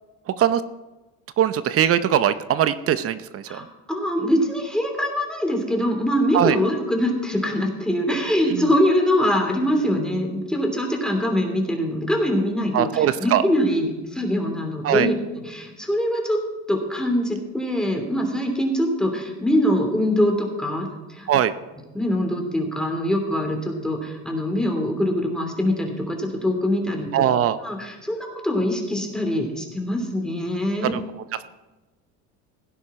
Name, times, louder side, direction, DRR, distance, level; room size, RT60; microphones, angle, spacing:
voice 1, 0.3-0.6 1.4-3.7 6.3-6.6 8.5-8.7 12.7-13.4 14.8-15.1 21.3-21.5 27.1-27.6 30.8-31.0, right 10 dB, 45° right, 13 dB, 0.8 m, -21 dB
voice 2, 3.5-15.1 15.4-16.4 16.7-21.3 21.9-27.1 27.6-30.9, equal, ahead, 2 dB, 2.9 m, -23 dB
17.0 x 10.0 x 4.3 m, 1.1 s
cardioid pair, 115°, 33 cm